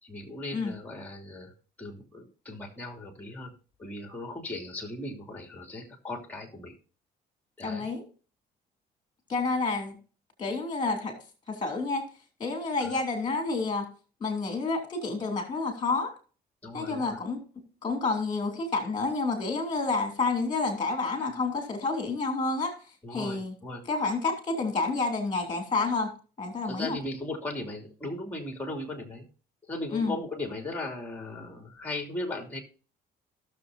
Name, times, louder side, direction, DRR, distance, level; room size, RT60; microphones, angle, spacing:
voice 1, 0.0-3.5 3.8-6.7 7.6-7.9 12.8-12.9 16.6-17.2 23.0-23.8 26.6-29.2 29.6-32.6, left 2 dB, 10° left, 3 dB, 2.9 m, -37 dB
voice 2, 7.6-8.0 9.3-10.0 10.4-11.1 11.5-12.0 12.4-13.9 14.2-16.1 16.7-17.4 17.8-22.7 23.1-23.5 23.9-26.1 26.4-27.0 29.9-30.1, left 3 dB, 25° left, 3 dB, 3.0 m, -29 dB
18.0 x 6.8 x 2.7 m, 0.38 s
cardioid pair, 110°, 17 cm